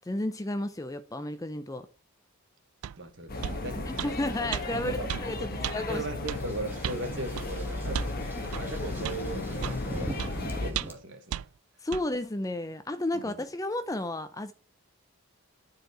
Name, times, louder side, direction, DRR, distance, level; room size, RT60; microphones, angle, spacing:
voice 1, 0.1-1.9 3.9-5.4 5.7-6.0 11.8-14.5, left 1 dB, 15° left, 0.4 m, -32 dB
sound 1, 2.8-3.0 3.4-3.6 4.0-4.1 4.5-4.6 5.1-5.3 5.6-5.8 6.3-6.4 6.8-7.0 7.4-7.5 7.9-8.1 8.5-8.6 9.0-9.2 9.6-9.8 10.2-10.3 10.7-11.0 11.3-11.4 11.9-12.0, right 10 dB, 80° right, 0.4 m, -34 dB
voice 2, 3.0-4.1 4.7-11.4 13.1-13.4, right 2 dB, 55° right, 1.5 m, -39 dB
sound 2, 3.3-10.7, left 2 dB, 40° left, 1.2 m, -35 dB
sound 3, 6.3-10.9, right 1 dB, 10° right, 1.2 m, -42 dB
10.5 x 4.7 x 5.0 m
head